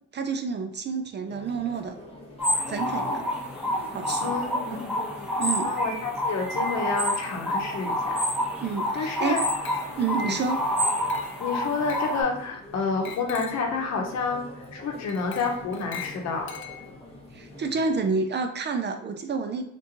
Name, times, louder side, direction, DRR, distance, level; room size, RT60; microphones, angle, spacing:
voice 1, 0.1-2.0 2.7-3.2 3.9-4.4 5.4-5.7 8.6-9.4 10.0-10.6 17.3-19.6, right 5 dB, 35° right, 6 dB, 0.4 m, -29 dB
sound 1, 1.3-18.0, left 1 dB, 20° left, 1.0 m, -44 dB
sound 2, 2.4-12.2, equal, 5° right, 0.9 m, -28 dB
voice 2, 4.2-5.0 5.6-8.1 8.9-9.4 10.1-10.3 11.4-14.5 14.7-16.5, left 4 dB, 60° left, 1 dB, 0.9 m, -29 dB
Glass, 9.4-10.2 11.1-11.5 11.9-12.2 13.1-13.7 15.1-17.1, left 8 dB, 40° left, 0.4 m, -42 dB
3.7 x 2.7 x 2.6 m, 0.73 s
cardioid pair, 90°, 30 cm